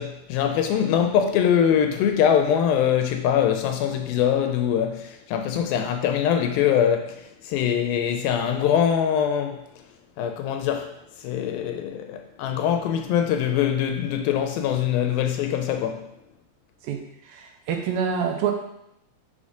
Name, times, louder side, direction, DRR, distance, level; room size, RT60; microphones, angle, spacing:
voice 1, 0.0-9.6 10.2-16.1, left 9 dB, 80° left, 2.2 m, -23 dB
voice 2, 16.8-18.5, right 7 dB, 80° right, 2.3 m, -27 dB
5.3 x 5.0 x 5.0 m
omnidirectional pair, 4.4 m